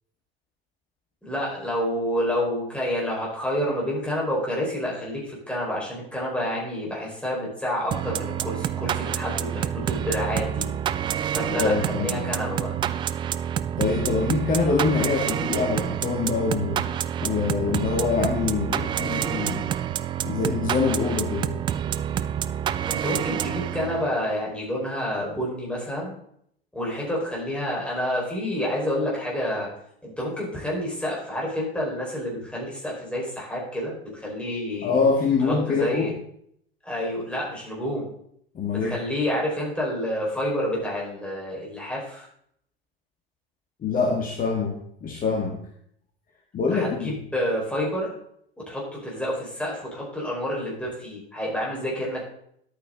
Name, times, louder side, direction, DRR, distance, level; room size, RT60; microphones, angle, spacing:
voice 1, 1.2-10.7 11.3-12.8 22.9-26.1 26.7-29.7 30.0-35.0 35.4-36.1 36.8-38.1 38.8-42.3 46.7-48.1 48.7-52.2, equal, 5° left, -4 dB, 5.3 m, -29 dB
sound 1, 7.9-24.2, right 10 dB, 15° right, 0.3 m, -28 dB
voice 2, 11.4-12.3 13.8-16.8 17.2-19.6 20.2-21.5 34.8-36.1 38.5-39.0 43.8-45.6 46.5-47.1, left 4 dB, 25° left, 1 dB, 1.8 m, -25 dB
11.5 x 8.7 x 4.0 m, 0.70 s
figure-of-eight pair, 80°, 31 cm